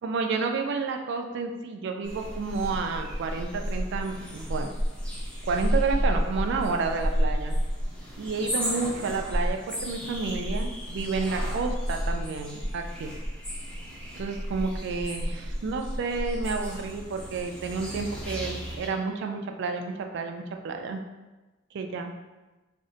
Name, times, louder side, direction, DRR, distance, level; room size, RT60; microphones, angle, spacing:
voice 1, 0.0-4.7 5.5-7.6 8.2-13.1 14.2-21.0 21.7-22.1, right 4 dB, 60° right, 4 dB, 0.3 m, -30 dB
sound 1, 2.0-18.9, equal, 5° left, 0.8 m, -31 dB
2.5 x 2.1 x 3.7 m, 1.1 s
head